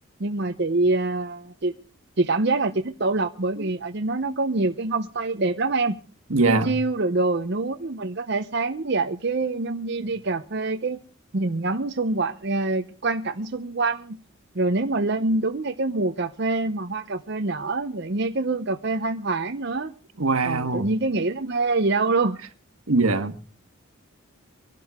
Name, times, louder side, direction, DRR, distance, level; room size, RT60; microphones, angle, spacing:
voice 1, 0.2-1.7 2.2-6.0 6.4-11.0 11.3-14.2 14.5-19.9 20.4-22.4, right 3 dB, 50° right, 0.7 m, -25 dB
voice 2, 6.3-6.8 20.2-20.9 22.9-23.3, right 3 dB, 85° right, 1.4 m, -22 dB
23.0 x 12.0 x 3.6 m
head